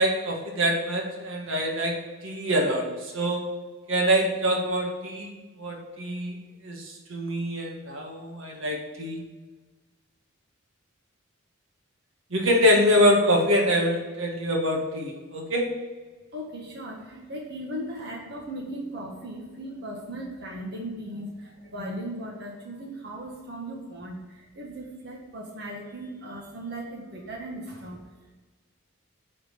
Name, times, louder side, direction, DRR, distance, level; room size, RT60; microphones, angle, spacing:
voice 1, 0.0-2.0 2.2-3.4 3.9-5.3 5.6-6.3 6.6-9.2 12.3-15.7, equal, 70° right, 0 dB, 1.8 m, -24 dB
voice 2, 16.3-28.3, right 1 dB, 50° right, -3 dB, 1.5 m, -37 dB
9.7 x 4.3 x 6.8 m, 1.3 s
head